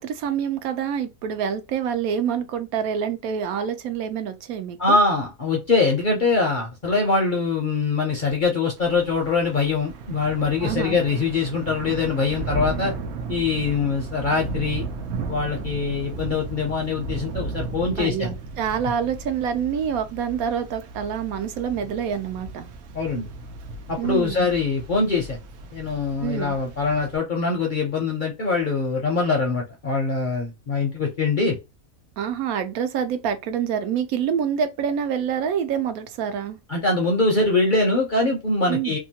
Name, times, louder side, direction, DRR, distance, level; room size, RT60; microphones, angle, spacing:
voice 1, 0.0-5.0 10.6-11.0 18.0-22.7 24.0-24.5 26.2-26.6 32.2-36.6 38.7-38.9, right 8 dB, 85° right, 1.1 m, -26 dB
voice 2, 4.8-12.9 13.3-14.8 15.3-18.3 22.9-23.3 23.9-25.4 25.7-31.6 36.7-39.0, left 3 dB, 50° left, 0.6 m, -23 dB
Thunder / Rain, 8.8-27.2, right 3 dB, 65° right, 0.7 m, -35 dB
2.9 x 2.3 x 2.8 m
omnidirectional pair, 1.5 m